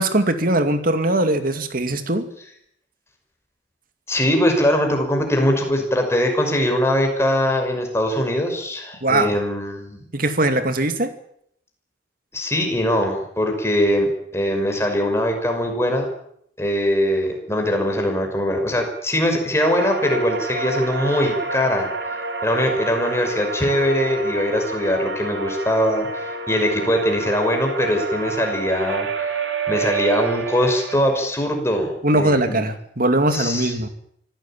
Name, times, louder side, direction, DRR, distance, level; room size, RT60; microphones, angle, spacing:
voice 1, 0.0-2.3 9.0-9.3 10.1-11.1 32.0-33.9, right 1 dB, 50° right, 8 dB, 2.4 m, -20 dB
voice 2, 4.1-10.0 12.3-16.1 16.6-21.9 22.4-29.4 29.7-32.6 33.3-33.7, equal, 15° left, 3 dB, 5.8 m, -21 dB
sound 1, 19.6-31.0, right 4 dB, 70° right, 3.5 m, -28 dB
25.5 x 16.0 x 8.9 m, 0.70 s
head